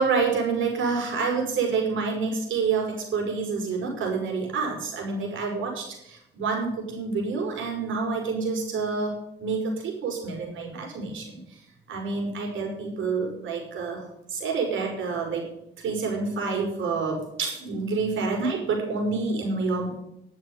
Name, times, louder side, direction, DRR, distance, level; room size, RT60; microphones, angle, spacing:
voice 1, 0.0-11.6 11.9-14.1 14.3-15.5 15.8-20.0, right 4 dB, 75° right, 0 dB, 5.5 m, -28 dB
12.5 x 7.5 x 8.0 m, 0.82 s
cardioid pair, 90°, 20 cm